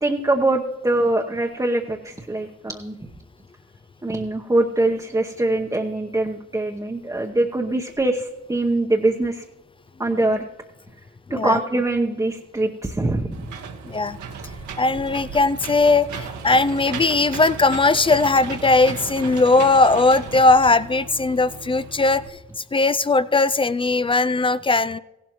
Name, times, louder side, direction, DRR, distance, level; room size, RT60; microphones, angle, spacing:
voice 1, 0.0-2.9 4.0-9.4 10.0-10.4 11.3-13.5, right 2 dB, 10° right, 1 dB, 0.9 m, -23 dB
voice 2, 11.3-11.6 13.8-14.2 14.8-22.4 22.7-25.0, left 3 dB, 20° left, 16 dB, 0.3 m, -19 dB
Engine / Mechanisms, 13.3-22.3, right 5 dB, 70° right, 1.5 m, -35 dB
16.0 x 12.0 x 3.1 m, 1.0 s
cardioid pair, 90°, 30 cm